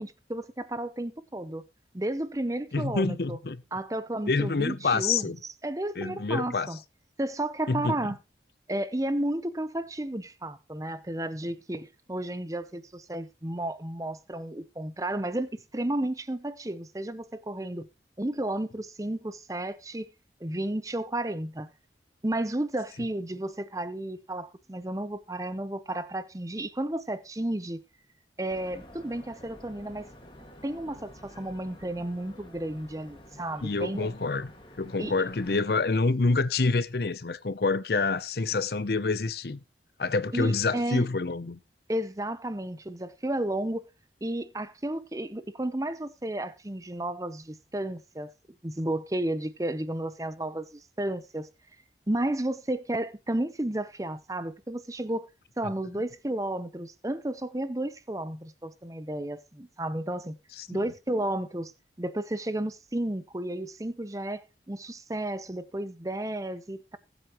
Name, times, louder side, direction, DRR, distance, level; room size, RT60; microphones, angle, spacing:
voice 1, 0.0-1.6 1.9-3.4 3.7-5.3 5.6-6.8 7.2-8.2 8.7-17.9 18.2-20.1 20.4-21.7 22.2-27.8 28.4-30.1 30.6-34.1 35.0-35.1 40.3-41.0 41.9-43.8 44.2-48.3 48.6-51.5 52.1-55.3 55.6-60.4 60.7-61.7 62.0-67.0, right 1 dB, 20° right, 0.7 m, -32 dB
voice 2, 2.7-3.6 4.3-5.4 6.0-6.7 7.7-8.0 33.6-34.5 34.8-39.6 40.0-41.6 60.6-60.8, left 3 dB, 60° left, 0.6 m, -27 dB
sound 1, 28.5-35.6, left 1 dB, 25° left, 1.9 m, -50 dB
20.0 x 8.0 x 3.0 m
head